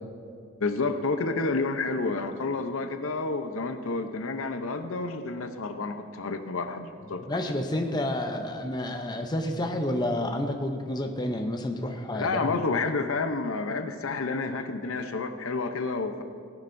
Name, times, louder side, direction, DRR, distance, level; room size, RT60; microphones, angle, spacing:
voice 1, 0.6-7.3 12.1-16.2, left 3 dB, 60° left, 8 dB, 0.7 m, -30 dB
voice 2, 7.3-12.6, left 1 dB, 20° left, 4 dB, 0.6 m, -30 dB
17.5 x 11.0 x 2.6 m, 2.3 s
head